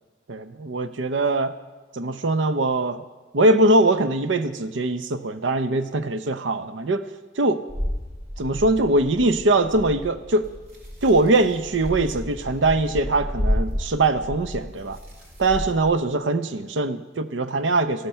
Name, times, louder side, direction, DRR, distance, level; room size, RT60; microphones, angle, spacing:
voice 1, 0.3-1.5 1.9-3.0 3.3-7.0 7.4-7.6 8.4-10.5 11.0-15.0 15.4-18.1, right 2 dB, 80° right, 11 dB, 0.7 m, -22 dB
sound 1, 7.7-15.9, equal, 50° right, 3.2 m, -31 dB
14.5 x 12.0 x 5.6 m, 1.3 s
head